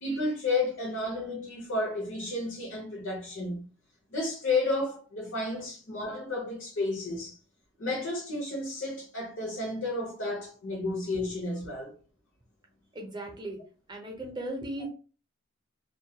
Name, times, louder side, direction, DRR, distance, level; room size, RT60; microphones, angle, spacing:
voice 1, 0.0-3.6 4.1-7.4 7.8-11.9, left 2 dB, 70° left, 0.7 m, -32 dB
voice 2, 12.9-13.6 13.9-14.9, right 1 dB, 20° right, 0.5 m, -37 dB
2.2 x 2.1 x 2.7 m
head